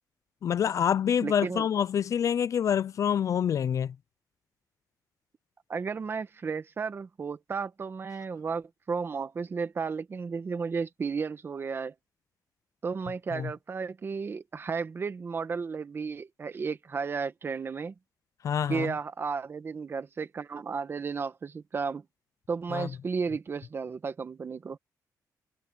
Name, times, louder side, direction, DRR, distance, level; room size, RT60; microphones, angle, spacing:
voice 1, 0.4-3.9 13.3-13.5 18.4-18.9 22.7-22.9, left 8 dB, 50° left, 0.4 m, -27 dB
voice 2, 1.2-1.7 5.7-11.9 12.8-17.9 18.7-22.0 22.5-24.8, right 5 dB, 30° right, 1.3 m, -33 dB
wide cardioid pair, 155°, 7 cm